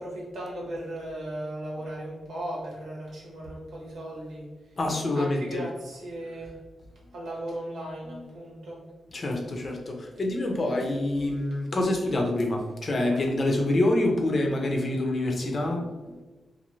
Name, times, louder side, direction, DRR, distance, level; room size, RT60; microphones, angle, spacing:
voice 1, 0.0-4.5 5.1-6.5 7.1-8.8, right 1 dB, 85° right, -4 dB, 1.0 m, -37 dB
voice 2, 4.8-5.6 8.1-8.2 9.1-16.2, left 1 dB, 40° left, 1 dB, 0.5 m, -26 dB
2.6 x 2.6 x 3.0 m, 1.2 s
wide cardioid pair, 125°, 0 cm